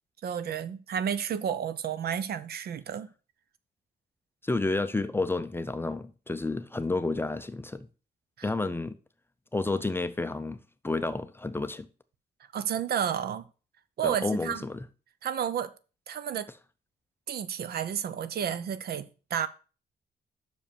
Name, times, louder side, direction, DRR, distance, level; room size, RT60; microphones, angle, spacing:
voice 1, 0.2-3.1 8.4-8.5 12.5-13.5 14.0-14.6 15.2-15.7 16.1-16.5 17.3-19.5, right 8 dB, 65° right, 0.7 m, -31 dB
voice 2, 4.4-7.9 8.4-8.9 9.5-10.6 10.8-11.9 14.0-14.8, left 2 dB, 15° left, 0.5 m, -30 dB
6.2 x 5.1 x 6.9 m
cardioid pair, 135°, 17 cm